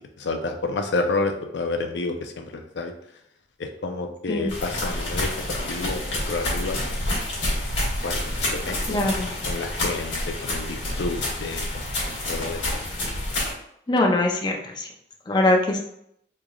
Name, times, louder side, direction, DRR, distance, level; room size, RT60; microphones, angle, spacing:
voice 1, 0.2-2.9 3.6-7.0 8.0-9.2 9.5-12.7, left 3 dB, 70° left, 5 dB, 0.5 m, -30 dB
sound 1, 4.5-13.5, left 1 dB, 90° left, 1.3 m, -28 dB
voice 2, 8.9-9.3 13.9-14.9 15.3-15.8, left 1 dB, 25° left, 1 dB, 0.5 m, -22 dB
3.8 x 3.2 x 2.3 m, 0.73 s
head